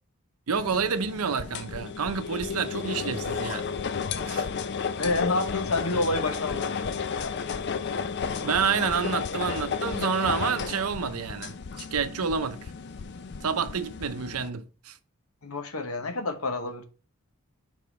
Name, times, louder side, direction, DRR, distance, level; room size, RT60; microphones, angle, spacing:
sound 1, 0.5-14.5, left 6 dB, 50° left, 0.4 m, -33 dB
voice 1, 0.5-3.7 4.2-4.5 8.4-12.7 13.4-15.0, right 6 dB, 85° right, 0.6 m, -29 dB
voice 2, 5.0-6.7 7.2-7.3 15.4-16.8, left 2 dB, 75° left, 1.0 m, -28 dB
4.9 x 3.9 x 5.1 m
head